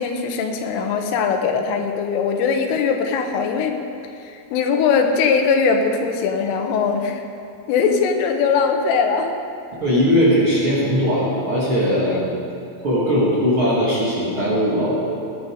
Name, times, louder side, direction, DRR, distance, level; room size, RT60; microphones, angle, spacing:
voice 1, 0.0-3.8 4.2-7.2 7.7-9.4 12.1-12.2, left 5 dB, 85° left, 4 dB, 3.5 m, -20 dB
voice 2, 9.8-12.4 12.8-15.0, equal, 35° right, -8 dB, 2.4 m, -19 dB
19.5 x 10.5 x 5.0 m, 2.6 s
omnidirectional pair, 5.7 m